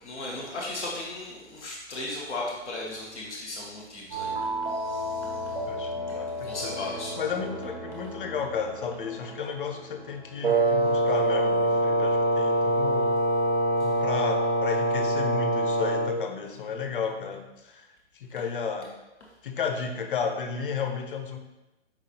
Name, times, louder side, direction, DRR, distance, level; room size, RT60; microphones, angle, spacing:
voice 1, 0.0-5.6 6.1-6.2 6.4-7.2, left 2 dB, 5° right, -19 dB, 0.3 m, -36 dB
sound 1, 4.1-10.6, equal, 20° right, 0.7 m, -35 dB
voice 2, 5.7-6.8 7.2-13.1 13.8-17.8 18.1-18.9 19.4-21.4, left 5 dB, 50° left, 5 dB, 0.5 m, -33 dB
Wind instrument woodwind instrument, 10.4-16.2, right 1 dB, 55° right, 0.7 m, -24 dB
4.7 x 3.6 x 2.8 m, 1.0 s
hypercardioid pair, 140°, 35 cm